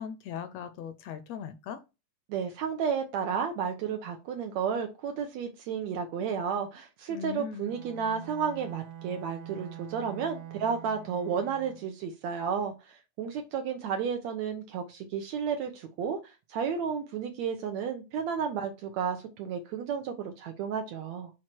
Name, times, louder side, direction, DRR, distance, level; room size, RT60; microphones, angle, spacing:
voice 1, 0.0-1.8 7.1-7.7, left 8 dB, 75° left, 1.7 m, -39 dB
voice 2, 2.3-16.2 16.5-21.3, right 7 dB, 75° right, 2.0 m, -32 dB
Bowed string instrument, 7.6-12.0, right 10 dB, 90° right, 2.1 m, -45 dB
6.3 x 4.5 x 4.5 m
omnidirectional pair, 3.4 m